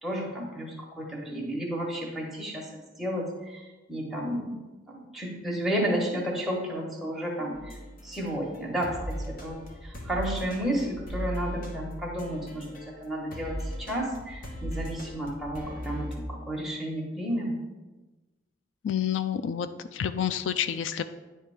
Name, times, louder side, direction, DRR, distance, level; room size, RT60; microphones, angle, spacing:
voice 1, 0.0-2.7 3.0-4.6 4.8-7.8 8.0-9.6 9.8-17.5, equal, ahead, -3 dB, 1.3 m, -32 dB
sound 1, 7.5-13.0 13.3-16.2, equal, 50° left, 1.1 m, -38 dB
voice 2, 18.8-21.0, left 9 dB, 85° left, 11 dB, 0.3 m, -29 dB
9.4 x 3.3 x 4.8 m, 1.2 s
head